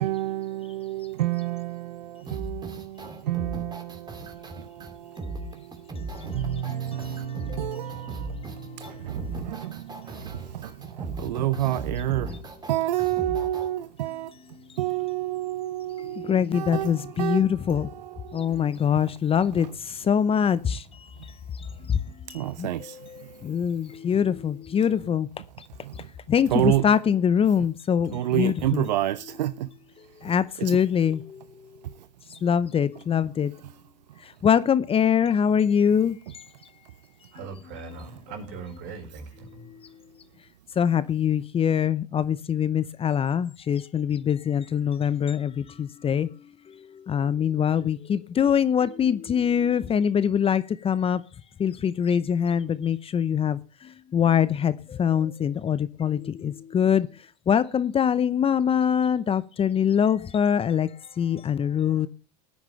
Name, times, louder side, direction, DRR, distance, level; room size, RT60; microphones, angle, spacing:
voice 1, 0.0-12.4 12.7-14.3 14.8-19.0 19.5-19.8 21.2-21.3 21.8-21.9 22.3-23.4 25.7-26.1 26.4-26.9 28.1-29.7 30.2-30.8 31.8-32.1 33.6-33.7 34.1-34.2 38.0-38.2, right 14 dB, 85° right, 0.6 m, -30 dB
sound 1, 2.3-13.7, right 2 dB, 20° right, 2.7 m, -37 dB
voice 2, 6.7-8.0 8.4-9.0 16.1-17.9 18.3-20.8 21.9-22.0 22.3-25.3 26.3-28.8 30.2-31.5 32.3-33.5 34.4-36.4 40.8-46.3 46.8-51.2 51.6-57.1 57.5-60.9 61.2-62.1, left 8 dB, 25° left, 0.7 m, -24 dB
voice 3, 37.3-39.7, right 4 dB, 60° right, 4.6 m, -40 dB
17.5 x 9.5 x 3.2 m
hypercardioid pair, 95°, 21 cm